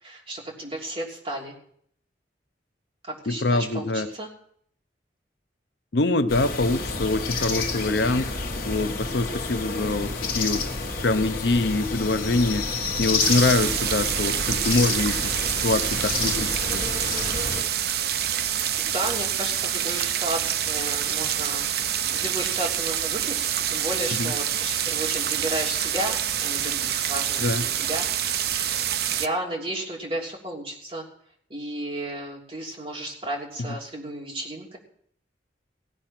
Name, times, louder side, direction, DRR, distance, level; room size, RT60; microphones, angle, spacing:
voice 1, 0.0-1.5 3.0-4.3 18.8-21.7 22.1-28.1 29.1-31.0 31.5-34.8, right 1 dB, 30° right, -2 dB, 3.2 m, -33 dB
voice 2, 3.3-4.1 5.9-8.4 8.7-10.6 11.0-12.7 13.0-15.3 15.6-16.9 24.2-24.3 27.4-27.6, left 2 dB, 70° left, 11 dB, 0.7 m, -24 dB
sound 1, 6.3-17.6, left 4 dB, 50° left, 1.5 m, -29 dB
sound 2, 13.2-29.3, right 10 dB, 60° right, 0.6 m, -27 dB
17.0 x 8.9 x 6.0 m, 0.64 s
head